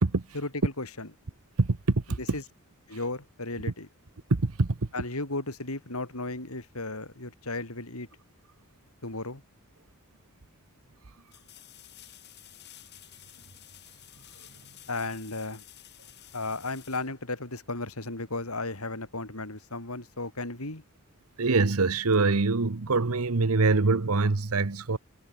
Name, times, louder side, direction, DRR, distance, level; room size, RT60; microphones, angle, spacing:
voice 1, 0.3-1.1 2.3-2.4 2.9-3.9 4.9-8.1 9.0-9.4 14.9-15.6 16.3-20.8, left 2 dB, 80° left, 4.8 m, -35 dB
voice 2, 1.6-2.2 4.3-4.9 21.4-25.0, right 3 dB, 80° right, 1.0 m, -24 dB
sound 1, 9.9-10.0 11.3-17.9 20.7-20.8, left 13 dB, 50° left, 6.0 m, -52 dB
head